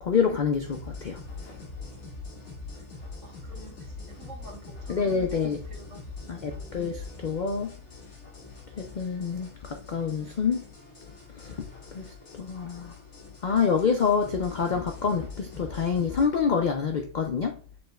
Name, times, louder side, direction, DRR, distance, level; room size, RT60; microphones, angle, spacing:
voice 1, 0.0-1.6 4.9-5.6 6.3-7.7 8.8-10.6 11.4-11.7 11.9-12.9 13.4-17.6, left 6 dB, 75° left, 0.4 m, -27 dB
sound 1, 0.6-16.3, left 3 dB, 55° left, 1.9 m, -44 dB
voice 2, 3.2-6.9, right 2 dB, 60° right, 1.7 m, -50 dB
6.9 x 3.2 x 2.2 m
omnidirectional pair, 1.5 m